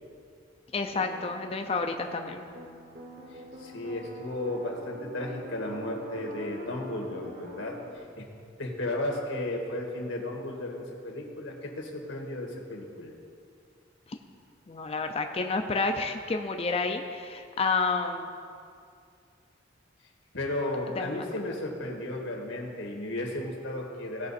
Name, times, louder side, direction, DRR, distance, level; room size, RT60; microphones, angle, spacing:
voice 1, 0.7-2.4 14.7-18.3 21.0-21.1, left 4 dB, 30° left, 5 dB, 0.5 m, -29 dB
sound 1, 0.9-8.0, equal, 50° right, 1.2 m, -45 dB
voice 2, 3.3-8.3 8.6-13.1 20.3-24.3, left 1 dB, 85° left, 0 dB, 1.8 m, -34 dB
17.0 x 5.7 x 4.2 m, 2.4 s
head